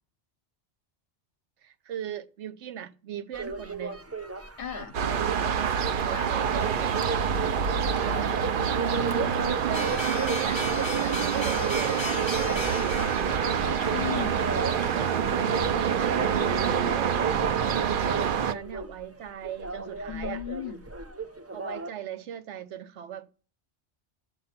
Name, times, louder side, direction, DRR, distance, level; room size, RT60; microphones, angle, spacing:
voice 1, 1.6-4.1 5.1-7.0 7.5-8.5 9.2-10.6 11.0-13.7 14.6-15.7 16.0-20.4 21.5-23.3, right 10 dB, 85° right, 1.0 m, -39 dB
sound 1, 3.3-21.9, right 3 dB, 20° right, 0.4 m, -36 dB
voice 2, 4.6-5.0 6.1-6.3 13.9-14.6 20.1-20.8, left 9 dB, 70° left, 1.1 m, -36 dB
sound 2, 4.9-18.5, right 7 dB, 55° right, 0.7 m, -27 dB
sound 3, 9.7-15.6, left 3 dB, 35° left, 0.5 m, -38 dB
11.0 x 7.6 x 5.8 m
omnidirectional pair, 1.2 m